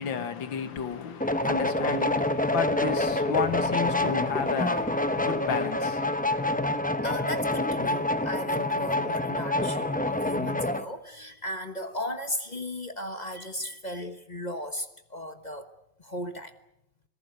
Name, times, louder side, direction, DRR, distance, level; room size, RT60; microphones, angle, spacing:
voice 1, 0.0-6.6, left 7 dB, 90° left, 2.3 m, -32 dB
sound 1, 1.2-10.8, left 1 dB, 10° left, 0.4 m, -27 dB
voice 2, 7.0-15.7 16.0-16.5, left 1 dB, 25° left, 1.1 m, -36 dB
26.5 x 18.0 x 8.0 m
omnidirectional pair, 2.0 m